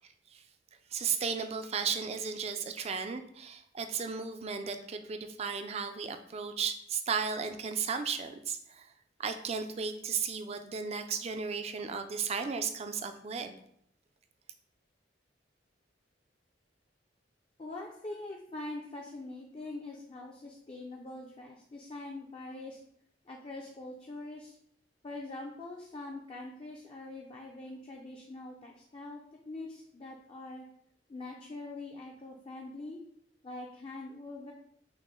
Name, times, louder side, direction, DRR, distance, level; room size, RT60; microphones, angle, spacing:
voice 1, 0.9-8.9 9.2-13.6, right 6 dB, 35° right, 8 dB, 0.4 m, -35 dB
voice 2, 17.6-22.8 23.3-24.6 25.0-30.6 31.1-33.0 33.4-34.5, left 2 dB, 30° left, -1 dB, 0.4 m, -43 dB
5.9 x 2.0 x 3.7 m, 0.70 s
head